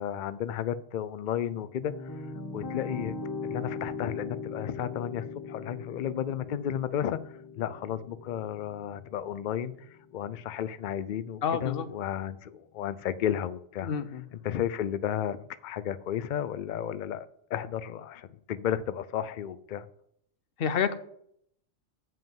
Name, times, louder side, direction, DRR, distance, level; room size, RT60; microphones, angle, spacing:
voice 1, 0.0-3.2 3.4-13.9 14.4-19.9, left 10 dB, 85° left, 14 dB, 0.4 m, -33 dB
sound 1, 1.7-10.6, left 4 dB, 20° left, 0.8 m, -40 dB
voice 2, 11.4-11.9 13.8-14.2 20.6-20.9, left 7 dB, 55° left, 12 dB, 0.8 m, -28 dB
7.6 x 5.4 x 7.5 m, 0.70 s
omnidirectional pair, 1.4 m